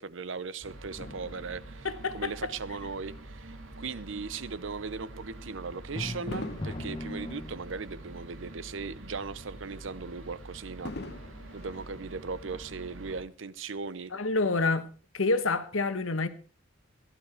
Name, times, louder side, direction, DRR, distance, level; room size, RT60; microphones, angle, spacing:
voice 1, 0.0-1.9 2.1-10.9 11.5-14.1, right 4 dB, 70° right, 0.7 m, -38 dB
sound 1, 0.6-13.2, right 2 dB, 90° right, 1.8 m, -46 dB
Fireworks, 1.0-3.6 4.2-4.4 6.3-8.8 9.2-9.3 10.8-12.7 13.5-13.6, left 2 dB, 55° left, 1.1 m, -45 dB
voice 2, 1.8-2.3 14.1-14.9 15.1-16.3, left 3 dB, 85° left, 1.3 m, -27 dB
Drum, 6.0-8.0, left 1 dB, 25° left, 0.7 m, -38 dB
15.5 x 12.0 x 4.5 m
head